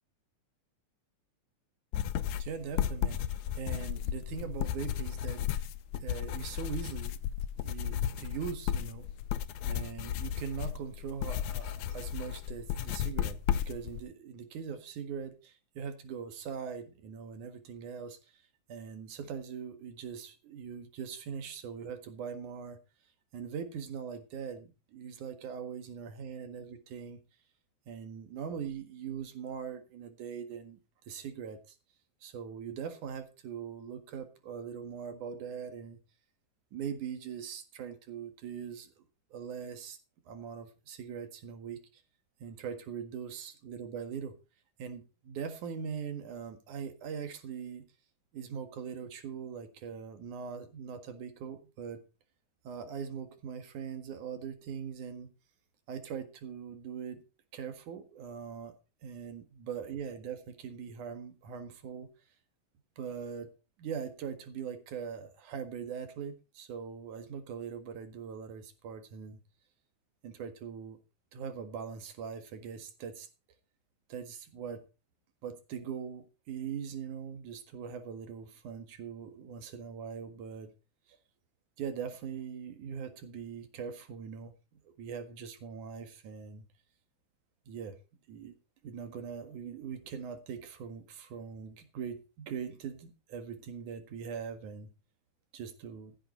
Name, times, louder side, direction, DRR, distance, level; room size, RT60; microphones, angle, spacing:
sound 1, 1.9-14.0, left 10 dB, 85° left, 2.2 m, -34 dB
voice 1, 2.4-3.2 3.6-5.7 6.0-7.2 7.6-9.1 9.6-18.4 18.7-22.8 23.3-27.2 27.9-31.6 32.2-36.0 36.7-38.9 39.3-40.0 40.3-42.0 42.4-44.3 44.8-47.9 48.3-52.0 52.6-55.3 55.9-57.2 57.5-58.8 59.0-62.1 63.0-63.5 63.8-69.4 70.2-71.0 71.3-73.3 74.1-74.8 75.4-80.7 81.8-84.5 85.0-86.7 87.7-88.0 88.3-88.6 88.8-94.9 95.5-96.1, right 7 dB, 85° right, 7 dB, 3.2 m, -41 dB
15.5 x 7.9 x 4.3 m, 0.31 s
omnidirectional pair, 3.4 m